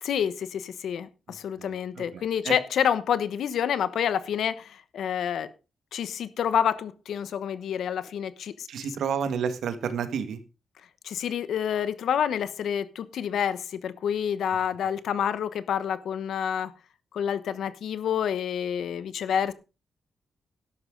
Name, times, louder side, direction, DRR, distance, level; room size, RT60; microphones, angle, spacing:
voice 1, 0.0-5.5 5.9-8.7 11.0-16.7 17.1-19.5, left 8 dB, 75° left, 15 dB, 1.0 m, -28 dB
voice 2, 1.3-2.5 8.7-10.4, right 7 dB, 80° right, 10 dB, 1.7 m, -31 dB
12.5 x 11.0 x 3.9 m, 0.30 s
wide cardioid pair, 170°, 0 cm